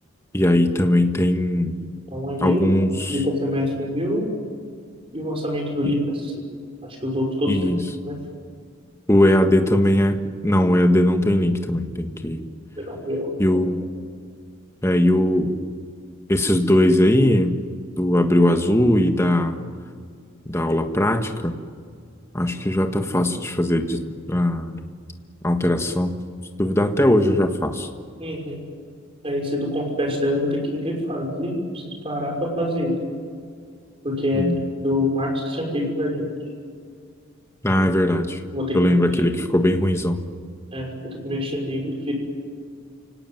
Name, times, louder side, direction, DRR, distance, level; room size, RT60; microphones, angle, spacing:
voice 1, 0.3-1.8 2.4-3.2 5.8-6.0 7.5-7.8 9.1-10.2 10.4-12.4 13.4-13.8 14.8-15.6 16.3-17.6 18.0-19.6 20.5-21.6 22.3-24.8 25.4-26.2 26.6-27.9 34.3-34.7 37.6-38.4 38.7-40.2, left 1 dB, 15° left, 5 dB, 1.6 m, -19 dB
voice 2, 2.1-2.6 3.1-4.3 5.1-6.4 7.0-7.8 8.1-8.2 12.8-13.3 28.2-28.6 29.2-31.6 31.9-33.0 34.0-34.5 34.8-36.3 37.8-37.9 38.5-38.9 40.7-42.1, left 1 dB, 25° right, 1 dB, 5.9 m, -25 dB
29.5 x 18.5 x 9.5 m, 2.1 s
head